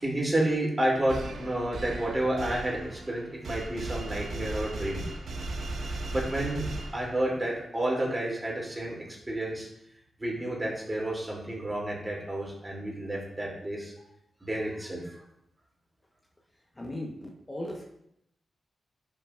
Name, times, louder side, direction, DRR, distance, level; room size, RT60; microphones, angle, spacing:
voice 1, 0.0-5.0 5.8-6.7 6.9-9.0 9.3-9.7 10.2-13.9 14.4-15.2, right 1 dB, 25° right, -3 dB, 3.0 m, -30 dB
sound 1, 1.1-7.4, right 2 dB, 75° right, 1.1 m, -37 dB
voice 2, 16.7-17.8, left 1 dB, 25° left, 0 dB, 1.3 m, -37 dB
11.0 x 5.9 x 2.6 m, 0.78 s
cardioid pair, 50°, 0 cm